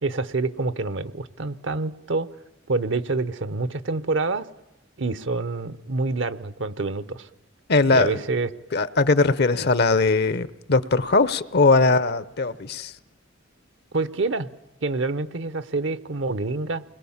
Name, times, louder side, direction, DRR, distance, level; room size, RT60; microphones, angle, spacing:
voice 1, 0.0-2.3 2.7-4.5 5.0-7.3 7.9-8.5 13.9-14.5 14.8-16.8, right 3 dB, 65° right, 0.9 m, -27 dB
voice 2, 7.7-8.2 8.7-12.9, left 3 dB, 55° left, 0.8 m, -20 dB
29.0 x 21.5 x 7.3 m
head